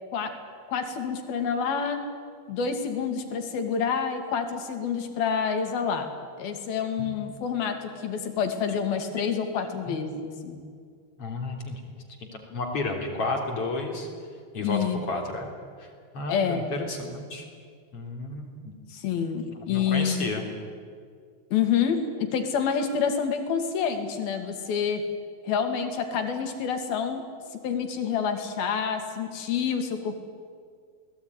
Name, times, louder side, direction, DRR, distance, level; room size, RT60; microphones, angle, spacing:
voice 1, 0.7-2.0 2.5-6.1 6.4-10.6 14.6-15.0 16.3-16.7 18.9-20.3 21.5-25.1 25.4-27.2 27.5-30.2, left 7 dB, 70° left, 6 dB, 4.1 m, -28 dB
voice 2, 11.2-11.8 12.2-14.1 14.5-14.8 15.1-15.5 15.8-15.9 16.1-17.5 17.9-18.7 19.7-20.5, left 2 dB, 35° left, 2 dB, 3.9 m, -32 dB
28.0 x 20.0 x 9.7 m, 2.1 s
omnidirectional pair, 4.6 m